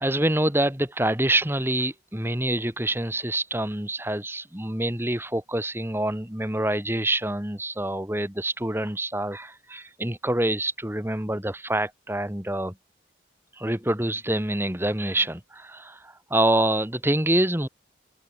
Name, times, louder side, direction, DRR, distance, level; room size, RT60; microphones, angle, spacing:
voice 1, 0.0-12.7 13.6-17.7, right 1 dB, 10° right, 2.2 m, -26 dB
open air
head